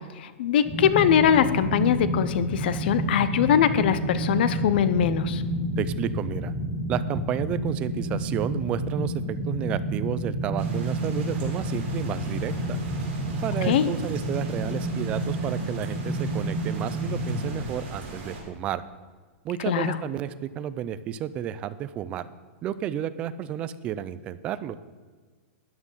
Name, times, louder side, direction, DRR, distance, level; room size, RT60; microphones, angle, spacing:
voice 1, 0.2-5.4 13.7-13.9 19.7-20.0, left 9 dB, 50° left, 14 dB, 0.7 m, -22 dB
sound 1, 0.6-17.6, right 1 dB, 5° left, 1.8 m, -30 dB
voice 2, 5.8-6.5 6.9-12.8 13.4-18.8 19.4-22.3 22.6-24.8, right 10 dB, 15° right, 14 dB, 0.3 m, -31 dB
sound 2, 10.6-18.4, right 3 dB, 45° right, 4.0 m, -40 dB
13.5 x 9.7 x 5.6 m, 1.5 s
supercardioid pair, 175°, 7 cm